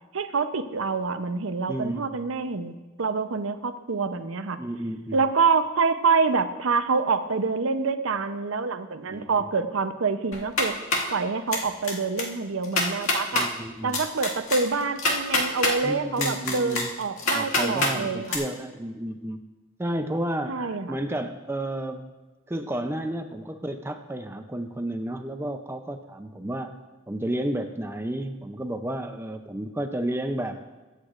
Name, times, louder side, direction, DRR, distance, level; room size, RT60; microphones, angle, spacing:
voice 1, 0.1-4.6 5.1-10.7 11.1-13.5 13.8-18.4 20.5-21.0, right 4 dB, 80° right, 10 dB, 0.7 m, -26 dB
voice 2, 1.7-2.2 4.6-5.2 9.1-9.5 13.3-14.0 15.8-16.9 17.3-19.4 19.8-22.1 22.5-26.7 27.1-30.6, right 1 dB, 10° right, 7 dB, 0.4 m, -31 dB
sound 1, 10.3-11.1 11.5-11.9 12.2-12.3 12.6-13.5 13.9-15.7 16.2-17.9 18.3-18.4, left 2 dB, 90° left, 2.0 m, -25 dB
22.5 x 8.2 x 2.5 m, 1.2 s
head